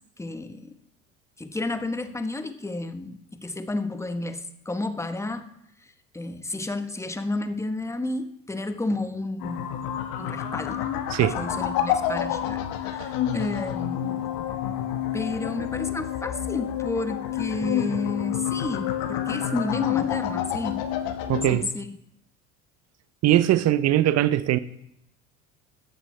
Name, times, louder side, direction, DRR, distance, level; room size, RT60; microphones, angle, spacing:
voice 1, 0.2-0.7 1.4-5.5 5.8-9.7 10.2-14.3 15.1-20.9 21.5-21.9, left 2 dB, 5° left, 1.0 m, -31 dB
sound 1, 9.4-21.6, left 10 dB, 60° left, 1.2 m, -28 dB
voice 2, 21.3-21.6 23.2-24.6, right 13 dB, 40° right, 0.6 m, -20 dB
13.0 x 8.9 x 3.2 m
hypercardioid pair, 65°, 40 cm